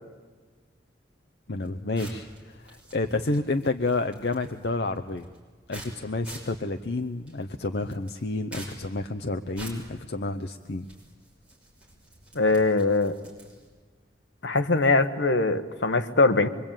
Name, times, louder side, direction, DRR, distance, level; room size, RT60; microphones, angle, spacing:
voice 1, 1.5-5.3 5.7-10.9, left 2 dB, 60° left, 6 dB, 0.7 m, -30 dB
sound 1, 1.5-13.8, right 1 dB, 5° right, 6.2 m, -48 dB
voice 2, 12.3-13.1 14.4-16.5, left 3 dB, 75° left, 8 dB, 1.4 m, -22 dB
24.0 x 23.5 x 9.0 m, 1.5 s
head